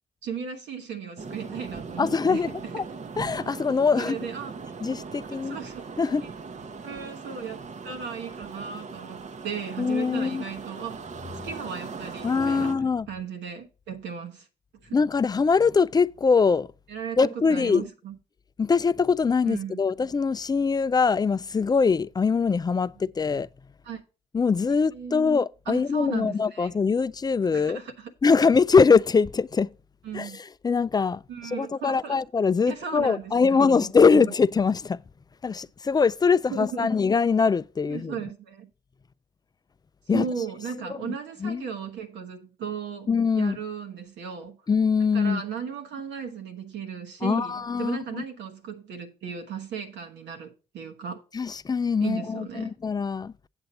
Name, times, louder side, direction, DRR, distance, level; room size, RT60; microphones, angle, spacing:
voice 1, 0.2-2.4 3.9-4.5 5.2-5.9 6.2-6.3 6.8-11.0 11.4-12.7 13.1-14.5 14.8-14.9 16.9-18.2 19.4-19.8 23.8-24.0 24.9-25.3 25.7-26.7 27.5-28.1 30.0-30.4 31.3-32.2 32.7-34.3 36.5-37.0 37.9-38.7 40.1-43.1 43.3-44.6 45.1-51.2 52.0-52.7, right 7 dB, 70° right, 1.2 m, -36 dB
sound 1, 1.2-12.7, right 4 dB, 40° right, 0.9 m, -39 dB
voice 2, 2.0-2.8 3.2-4.2 4.8-5.6 6.0-6.3 9.8-10.5 12.2-13.1 14.9-16.7 17.2-17.9 18.6-23.5 24.3-27.8 28.2-29.7 30.1-35.0 35.4-38.2 40.1-40.3 40.9-41.1 41.4-41.6 43.1-43.6 44.7-45.4 47.2-48.2 51.3-53.3, left 5 dB, 20° left, 0.4 m, -23 dB
8.0 x 7.7 x 4.1 m
hypercardioid pair, 45°, 19 cm